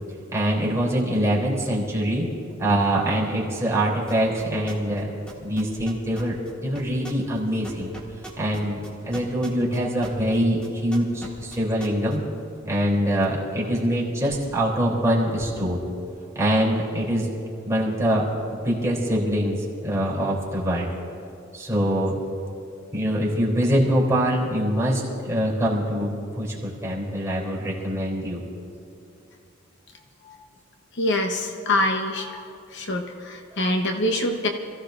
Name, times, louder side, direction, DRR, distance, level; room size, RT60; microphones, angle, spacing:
voice 1, 0.3-2.3 2.6-5.1 5.4-7.9 8.4-12.2 12.6-15.8 16.3-17.3 17.6-18.3 18.6-20.9 21.5-22.2 22.9-28.4 33.5-33.6, equal, 15° right, -5 dB, 3.3 m, -24 dB
sound 1, 4.1-5.0 5.3-10.4 10.6-12.2, right 1 dB, 5° left, 2.3 m, -39 dB
voice 2, 30.9-32.4 32.7-34.5, left 1 dB, 60° left, 3 dB, 1.1 m, -25 dB
27.0 x 15.5 x 2.6 m, 2.5 s
head